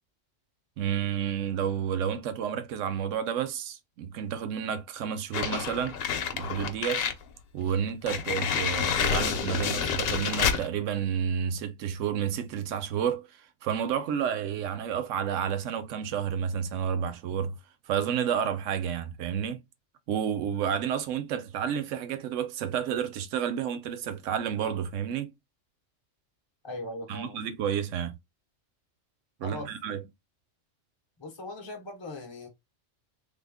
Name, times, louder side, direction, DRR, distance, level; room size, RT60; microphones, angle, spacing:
voice 1, 0.8-6.0 6.3-7.0 7.5-17.6 17.9-19.6 20.1-25.3 27.1-28.2 29.4-30.0, right 8 dB, 80° right, 1.0 m, -30 dB
sound 1, 5.3-7.2 7.6-7.7 8.1-10.7, left 7 dB, 60° left, 0.8 m, -28 dB
voice 2, 26.6-27.4 29.4-29.7 31.2-32.5, left 2 dB, 30° left, 0.5 m, -39 dB
3.5 x 2.1 x 3.5 m
omnidirectional pair, 1.3 m